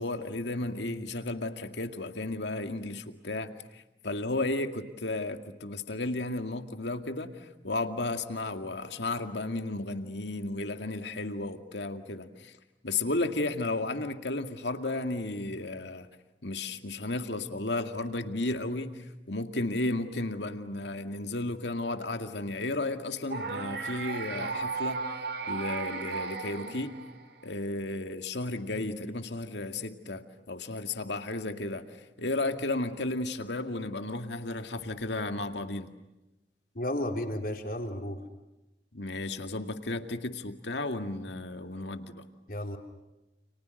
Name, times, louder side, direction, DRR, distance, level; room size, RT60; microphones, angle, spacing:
voice 1, 0.0-12.5 12.8-16.1 16.4-25.1 25.5-27.0 27.4-30.2 30.5-31.8 32.2-35.9 38.9-42.2, left 2 dB, 80° left, 2.2 m, -33 dB
sound 1, 23.3-27.5, right 4 dB, 75° right, 3.4 m, -35 dB
voice 2, 36.7-38.2 42.5-42.8, left 1 dB, 55° left, 3.8 m, -33 dB
30.0 x 30.0 x 6.6 m
head